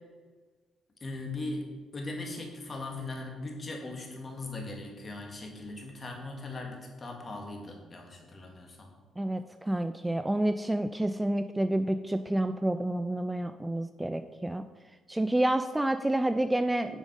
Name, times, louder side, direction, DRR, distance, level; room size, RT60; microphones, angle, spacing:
voice 1, 1.0-1.7 1.9-8.9, left 2 dB, 35° left, 1 dB, 2.1 m, -39 dB
voice 2, 9.2-14.6 15.1-17.0, right 1 dB, 10° right, 9 dB, 0.3 m, -29 dB
7.3 x 5.2 x 6.4 m, 1.4 s
cardioid pair, 90°, 0 cm